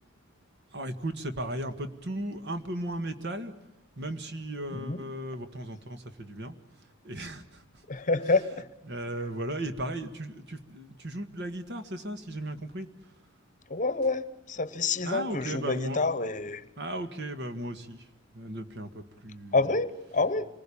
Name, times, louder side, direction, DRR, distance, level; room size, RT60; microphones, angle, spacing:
voice 1, 0.7-3.5 4.0-7.8 8.2-8.4 8.8-13.1 15.0-16.0 16.8-19.8, right 1 dB, 55° right, 1.8 m, -36 dB
voice 2, 7.9-8.7 13.7-16.6 19.5-20.5, left 3 dB, 35° left, 1.0 m, -28 dB
27.0 x 20.0 x 8.7 m
head